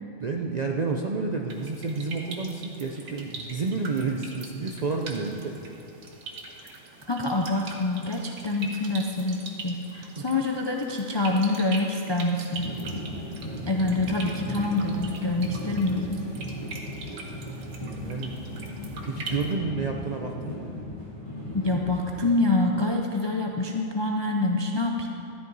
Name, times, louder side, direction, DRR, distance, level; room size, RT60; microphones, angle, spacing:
voice 1, 0.2-5.6 10.2-10.3 17.2-17.4 17.9-18.7 19.0-20.7, right 4 dB, 55° right, 1 dB, 0.5 m, -30 dB
sound 1, 1.5-19.5, right 3 dB, 90° right, 1.5 m, -42 dB
voice 2, 7.1-12.7 13.7-16.2 21.5-25.1, left 2 dB, 40° left, 1 dB, 0.4 m, -26 dB
sound 2, 12.6-22.3, left 1 dB, 20° left, 2.4 m, -37 dB
12.5 x 10.5 x 4.0 m, 2.7 s
omnidirectional pair, 1.4 m